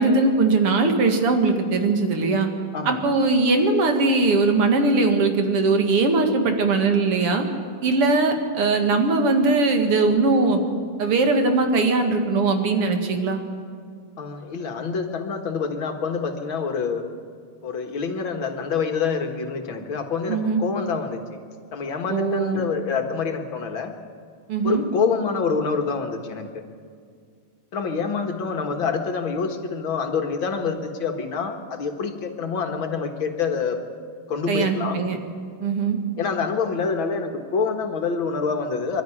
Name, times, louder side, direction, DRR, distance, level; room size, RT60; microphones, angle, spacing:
voice 1, 0.0-2.5 2.8-7.5 7.8-10.6 11.0-13.4 20.3-20.6 22.1-22.6 24.5-24.8 34.5-35.2 35.6-36.0, right 3 dB, 90° right, 5 dB, 2.9 m, -20 dB
voice 2, 2.7-3.1 14.2-17.0 17.6-21.2 21.7-23.9 24.6-26.5 27.7-33.8 34.3-35.0 36.2-39.0, left 5 dB, 65° left, 5 dB, 2.3 m, -26 dB
24.0 x 12.5 x 10.0 m, 2.1 s
omnidirectional pair, 2.4 m